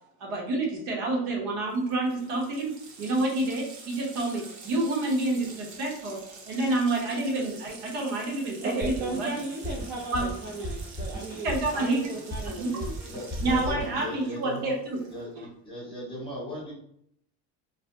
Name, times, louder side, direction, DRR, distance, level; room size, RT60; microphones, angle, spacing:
voice 1, 0.2-6.2 6.5-9.3 10.1-10.3 11.4-12.1 12.6-12.7 13.4-15.0 15.3-15.5, right 2 dB, 75° right, 0 dB, 1.0 m, -28 dB
Water tap faucet, 1.4-1.5 1.7-15.4, right 4 dB, 45° right, 0.7 m, -48 dB
voice 2, 8.6-13.3 13.8-13.9, right 2 dB, 30° right, -3 dB, 0.4 m, -36 dB
Drum kit, 8.8-14.1, equal, 10° right, 0.7 m, -36 dB
voice 3, 13.1-14.7 15.1-15.3 15.6-16.7, left 1 dB, 15° left, -4 dB, 1.0 m, -37 dB
2.5 x 2.0 x 3.4 m, 0.71 s
cardioid pair, 140°, 37 cm